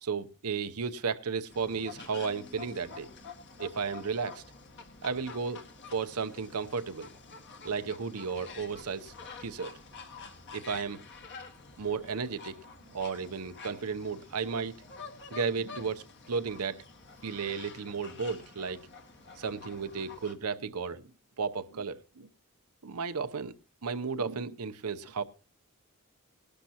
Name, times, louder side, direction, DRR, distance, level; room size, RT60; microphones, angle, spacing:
voice 1, 0.0-3.1 3.6-4.4 5.0-5.6 5.9-7.1 7.6-9.1 9.4-9.7 10.5-11.0 11.8-12.6 12.9-14.8 15.3-16.8 17.2-18.8 19.4-21.1 21.4-22.3 22.8-23.5 23.8-25.2, right 5 dB, 85° right, 0.8 m, -34 dB
sound 1, 1.5-20.3, left 4 dB, 55° left, 1.8 m, -48 dB
19.0 x 12.0 x 2.9 m
head